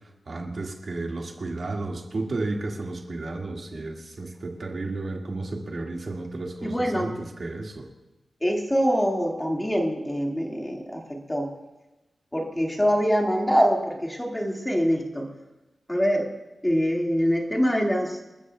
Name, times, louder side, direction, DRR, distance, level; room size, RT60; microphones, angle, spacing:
voice 1, 0.3-7.9, right 2 dB, 50° right, 1 dB, 1.8 m, -32 dB
voice 2, 6.6-7.1 8.4-11.5 12.3-15.3 15.9-16.3 16.6-18.2, equal, 10° left, 0 dB, 1.8 m, -24 dB
28.5 x 13.5 x 2.2 m, 1.0 s
wide cardioid pair, 145°, 0 cm